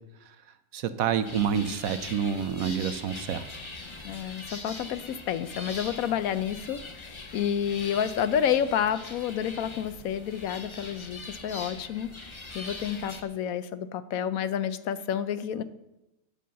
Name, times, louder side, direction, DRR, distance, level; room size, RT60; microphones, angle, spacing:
voice 1, 0.7-3.5, right 8 dB, 70° right, 11 dB, 1.0 m, -28 dB
sound 1, 1.2-13.2, left 2 dB, 25° left, 0.7 m, -42 dB
voice 2, 4.0-15.6, left 9 dB, 70° left, 13 dB, 1.0 m, -30 dB
10.5 x 5.4 x 7.5 m, 0.91 s
omnidirectional pair, 1.6 m